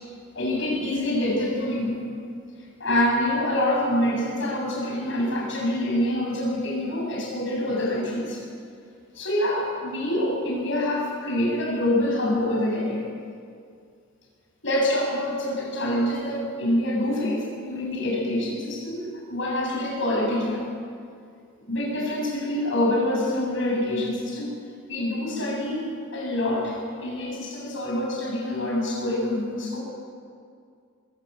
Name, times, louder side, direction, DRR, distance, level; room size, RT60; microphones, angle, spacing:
voice 1, 0.3-2.0 2.8-8.4 9.1-13.0 14.6-20.6 21.7-24.5 24.9-29.8, left 1 dB, 65° left, -2 dB, 7.9 m, -26 dB
22.0 x 17.0 x 8.4 m, 2.2 s
head